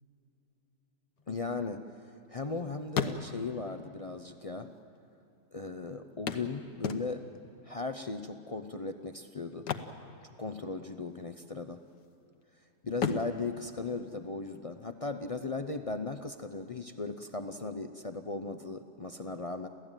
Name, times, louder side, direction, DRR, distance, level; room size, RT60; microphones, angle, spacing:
sound 1, 1.2-2.5 2.8-3.7 4.6-4.7 4.9-5.0 6.3-7.5 9.5-10.8 11.1-11.3 11.8-12.4 12.9-14.7 16.7-16.8 17.2-17.3, left 6 dB, 80° left, 1.6 m, -36 dB
voice 1, 1.3-1.8 2.3-4.7 5.5-7.2 7.6-9.7 10.4-11.8 12.8-19.7, left 3 dB, 50° left, 7 dB, 0.4 m, -37 dB
28.0 x 15.5 x 9.0 m, 2.9 s
omnidirectional pair, 1.7 m